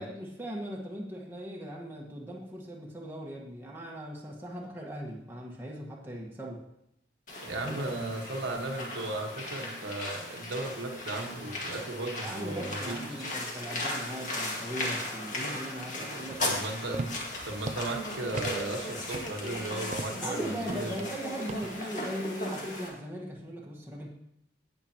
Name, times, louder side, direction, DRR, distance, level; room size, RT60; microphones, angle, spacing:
voice 1, 0.0-6.6 7.6-7.8 12.2-16.6 20.1-24.1, equal, 10° right, -3 dB, 1.4 m, -39 dB
sound 1, 7.3-22.9, left 1 dB, 40° left, 2.0 m, -37 dB
voice 2, 7.4-13.3 16.0-17.1 17.4-20.9, right 2 dB, 80° right, 2 dB, 1.4 m, -36 dB
sound 2, 16.3-21.9, right 3 dB, 40° right, 0.4 m, -41 dB
17.0 x 6.8 x 2.9 m, 0.78 s
head